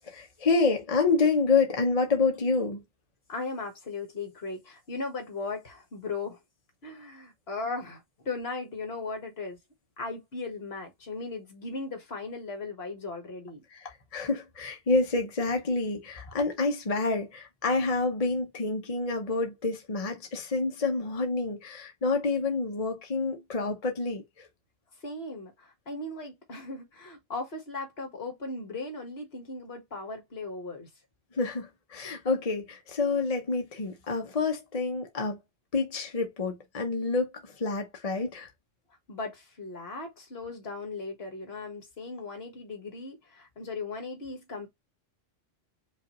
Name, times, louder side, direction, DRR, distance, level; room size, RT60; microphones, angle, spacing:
voice 1, 0.1-2.8 13.7-24.5 31.3-35.4 35.7-38.5, left 3 dB, 35° left, 0.8 m, -28 dB
voice 2, 3.3-6.4 6.8-9.6 10.0-13.6 25.0-30.9 39.1-44.7, left 3 dB, 55° left, 1.6 m, -37 dB
5.2 x 2.5 x 3.0 m
omnidirectional pair, 1.3 m